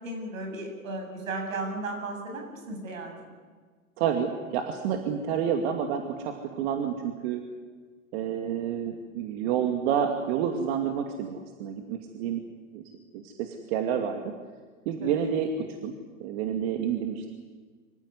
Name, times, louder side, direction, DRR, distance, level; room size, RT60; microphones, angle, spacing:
voice 1, 0.0-3.3 15.0-15.2, right 2 dB, 75° right, 4 dB, 8.0 m, -35 dB
voice 2, 4.0-7.4 8.1-12.4 12.7-12.8 13.1-14.3 14.9-15.5 15.8-15.9 16.2-17.3, right 8 dB, 50° right, 4 dB, 2.5 m, -29 dB
25.0 x 16.0 x 9.7 m, 1.5 s
hypercardioid pair, 110°, 40 cm